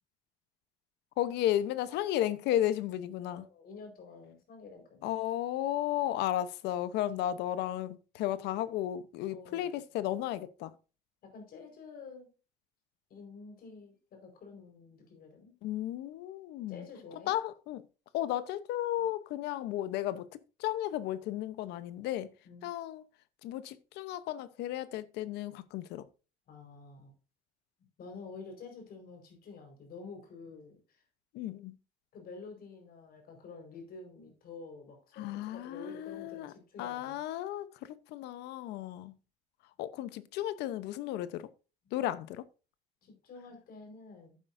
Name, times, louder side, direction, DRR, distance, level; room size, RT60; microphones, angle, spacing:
voice 1, 1.2-3.4 5.0-10.7 15.6-16.9 17.3-17.8 18.1-20.3 20.6-22.3 22.6-23.0 23.4-26.0 31.3-31.8 35.2-36.5 36.8-39.1 39.8-41.5 41.9-42.4, left 12 dB, 90° left, 0.9 m, -34 dB
voice 2, 3.3-5.1 9.3-9.8 11.2-12.3 13.1-15.5 16.7-17.3 19.0-19.1 22.4-22.7 26.5-27.1 28.0-31.0 32.1-37.2 41.8-41.9 43.0-44.4, left 4 dB, 60° left, 4.8 m, -49 dB
11.0 x 9.2 x 2.6 m
cardioid pair, 110°, 17 cm